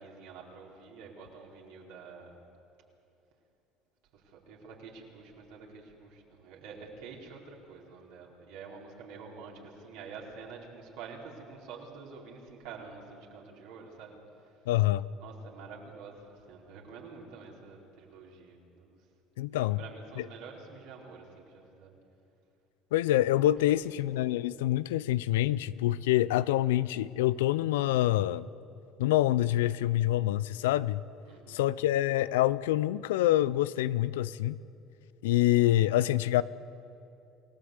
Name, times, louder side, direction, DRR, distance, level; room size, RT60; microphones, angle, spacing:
voice 1, 0.0-2.3 4.1-14.7 15.2-19.0 19.5-21.9 23.7-23.9 31.2-31.6, right 5 dB, 75° right, 4.6 m, -48 dB
voice 2, 14.7-15.1 19.4-19.8 22.9-28.5 29.0-31.0 31.5-34.5 35.2-36.4, left 14 dB, 85° left, 0.5 m, -26 dB
28.0 x 17.5 x 8.1 m
hypercardioid pair, 70°, 0 cm